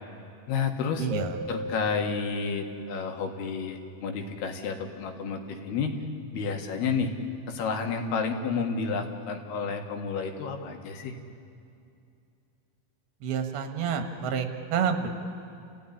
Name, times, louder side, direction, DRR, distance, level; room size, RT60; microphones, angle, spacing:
voice 1, 0.5-1.1 1.5-6.0 6.3-7.1 7.5-11.2, left 5 dB, 90° left, 4 dB, 3.7 m, -30 dB
voice 2, 1.0-1.3 13.2-15.1, right 7 dB, 80° right, 6 dB, 3.4 m, -29 dB
sound 1, 1.1-3.7, equal, 40° right, 9.0 m, -38 dB
29.5 x 16.0 x 10.0 m, 2.5 s
omnidirectional pair, 4.4 m